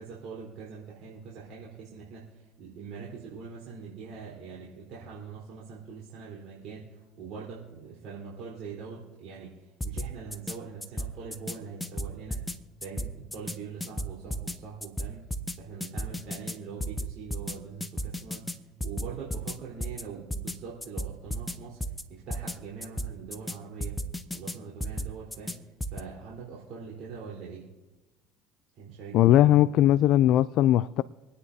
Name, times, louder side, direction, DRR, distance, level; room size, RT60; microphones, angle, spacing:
voice 1, 0.0-2.3 2.6-12.4 12.8-15.3 15.6-18.5 18.8-21.8 22.1-24.0 24.3-25.6 25.9-27.7 28.8-29.7, right 5 dB, 60° right, 4.0 m, -43 dB
sound 1, 9.8-10.6 10.8-11.6 11.8-12.6 12.8-13.6 13.8-14.6 14.8-15.6 15.8-16.6 16.8-17.6 17.8-18.6 18.8-19.6 19.8-20.0 20.3-20.6 20.8-21.6 21.8-22.0 22.3-22.6 22.8-23.6 23.8-24.6 24.8-25.6 25.8-26.0, equal, 10° left, 1.0 m, -33 dB
voice 2, 29.1-31.0, left 13 dB, 65° left, 0.3 m, -19 dB
26.0 x 9.7 x 2.8 m
hypercardioid pair, 80°, 0 cm